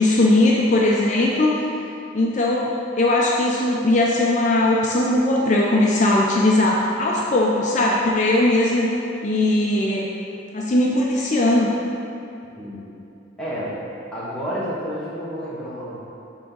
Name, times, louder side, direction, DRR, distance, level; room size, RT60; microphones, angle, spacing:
voice 1, 0.0-1.7 2.1-8.9 9.2-10.1 10.5-11.7, left 1 dB, 40° left, -3 dB, 0.5 m, -19 dB
voice 2, 12.6-12.9 13.4-13.8 14.1-16.0, equal, 5° left, -10 dB, 1.1 m, -30 dB
8.4 x 3.5 x 3.9 m, 2.7 s
head